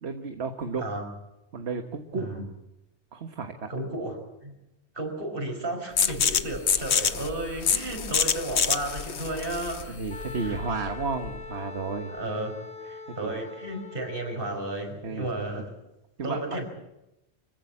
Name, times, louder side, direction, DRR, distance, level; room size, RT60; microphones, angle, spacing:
voice 1, 0.0-0.8 1.5-2.3 3.1-3.7 9.9-12.1 13.1-13.4 15.0-15.3 16.2-16.6, right 4 dB, 75° right, 6 dB, 1.7 m, -32 dB
voice 2, 2.1-2.5 3.7-4.5 4.9-10.0 10.4-10.6 12.1-12.6 12.9-15.7 16.2-16.7, right 2 dB, 55° right, 4 dB, 5.6 m, -33 dB
sound 1, 6.0-11.5, left 7 dB, 80° left, 1.3 m, -27 dB
Wind instrument woodwind instrument, 10.1-14.7, left 4 dB, 55° left, 1.7 m, -42 dB
25.5 x 16.0 x 8.7 m, 0.91 s
omnidirectional pair, 1.1 m